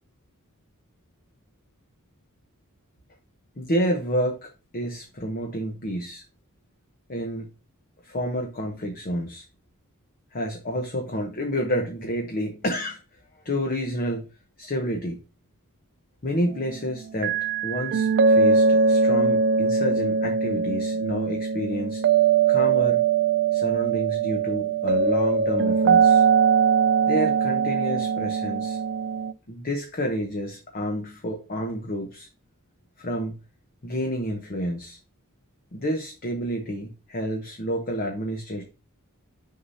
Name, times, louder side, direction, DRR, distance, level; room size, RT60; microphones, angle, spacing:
voice 1, 3.6-6.2 7.1-7.5 8.0-9.5 10.3-13.0 13.3-14.3 14.6-15.2 16.2-22.0 22.5-23.0 23.5-26.2 27.1-28.8 29.5-32.3 33.0-33.4 33.8-35.0 35.7-38.6, equal, 40° left, 1.0 m, -29 dB
sound 1, 17.2-29.3, right 5 dB, 50° right, 0.4 m, -21 dB
6.5 x 5.6 x 2.7 m
head